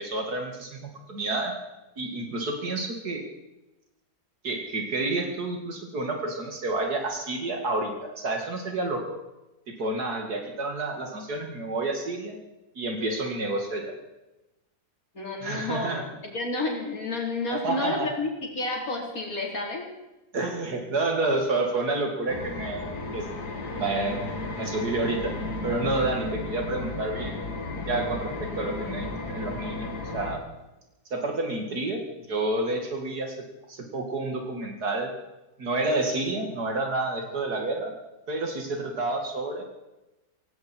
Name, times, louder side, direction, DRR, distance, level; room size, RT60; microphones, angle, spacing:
voice 1, 0.0-1.5 2.0-3.2 4.4-9.2 9.7-12.4 12.8-14.0 15.4-16.1 17.5-18.1 20.3-23.3 23.7-24.2 24.5-25.4 25.6-27.4 27.9-30.4 31.1-32.0 32.3-33.3 33.7-35.1 35.6-37.9 38.3-39.6, right 2 dB, 75° right, 3 dB, 2.8 m, -29 dB
voice 2, 15.1-16.1 16.3-18.3 18.6-19.9, left 2 dB, 60° left, 0 dB, 4.4 m, -30 dB
sound 1, 22.3-30.4, left 2 dB, 80° left, 3.0 m, -34 dB
17.5 x 17.5 x 4.5 m, 0.99 s
omnidirectional pair, 1.7 m